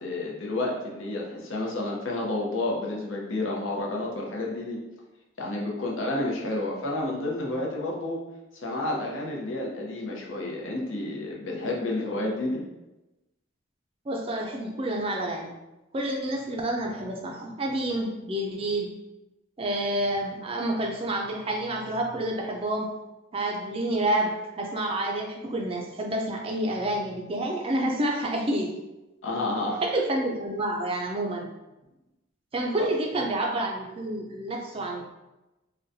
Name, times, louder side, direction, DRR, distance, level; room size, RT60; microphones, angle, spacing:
voice 1, 0.0-4.8 5.4-8.2 8.5-12.6 29.2-29.8, left 2 dB, 80° left, -2 dB, 0.7 m, -30 dB
voice 2, 14.1-15.5 15.9-18.9 19.6-22.9 23.3-28.7 29.8-31.5 32.5-35.1, right 1 dB, 30° right, 1 dB, 0.4 m, -29 dB
3.8 x 2.2 x 2.6 m, 1.0 s
head